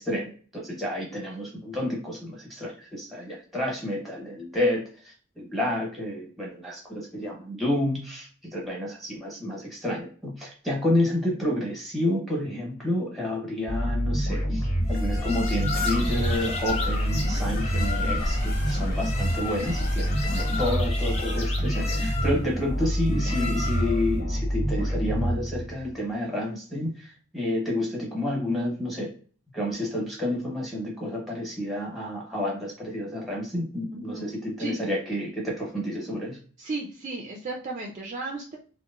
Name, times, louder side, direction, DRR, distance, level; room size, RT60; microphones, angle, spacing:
voice 1, 0.0-29.1 29.5-36.4, left 1 dB, ahead, -3 dB, 0.9 m, -30 dB
sound 1, 13.7-25.9, equal, 75° left, 1.3 m, -27 dB
sound 2, 14.9-24.1, left 4 dB, 30° left, 0.5 m, -34 dB
Stream, 15.7-20.8, equal, 50° left, 0.9 m, -37 dB
voice 2, 33.9-34.2 34.6-34.8 36.6-38.6, right 3 dB, 35° right, 1 dB, 0.3 m, -34 dB
2.8 x 2.0 x 2.3 m, 0.42 s
head